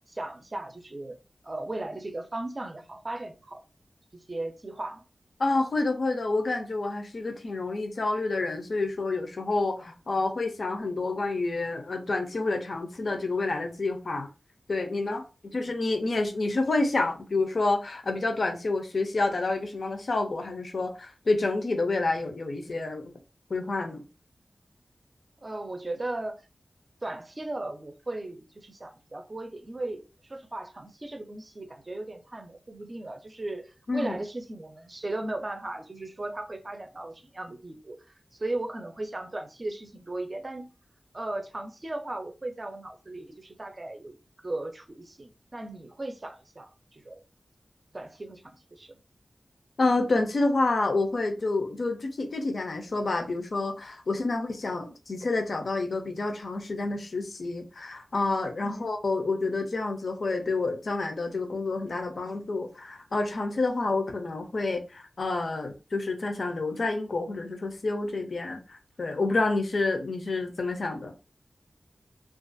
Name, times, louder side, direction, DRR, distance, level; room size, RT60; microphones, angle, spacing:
voice 1, 0.1-1.2 1.4-3.6 4.1-5.0 15.5-15.7 25.4-26.4 27.0-38.0 38.4-40.7 41.1-44.2 44.4-47.2 47.9-49.0 58.6-58.9, right 2 dB, 35° right, 0.5 m, -37 dB
voice 2, 5.4-14.3 14.7-23.1 23.5-24.0 33.9-34.2 49.8-71.1, left 3 dB, 70° left, 0.5 m, -28 dB
2.4 x 2.3 x 2.5 m
wide cardioid pair, 75°, 0 cm